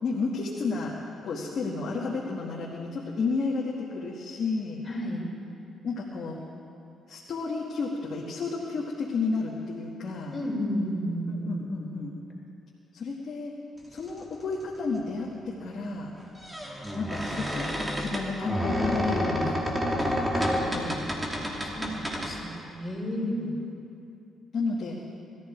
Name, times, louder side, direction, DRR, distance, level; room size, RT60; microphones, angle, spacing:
voice 1, 0.0-1.0 1.2-4.8 5.8-6.4 7.1-10.4 11.3-12.1 12.9-13.5 13.9-16.1 17.0-21.1 23.2-23.5 24.5-25.0, left 4 dB, 55° left, -4 dB, 2.0 m, -32 dB
voice 2, 4.9-5.2 10.3-11.6 21.6-23.7, equal, 25° left, -2 dB, 4.1 m, -32 dB
sound 1, 14.5-14.6 16.2-22.3, equal, 10° right, 2.6 m, -29 dB
20.5 x 14.0 x 4.6 m, 2.6 s
cardioid pair, 90°, 0 cm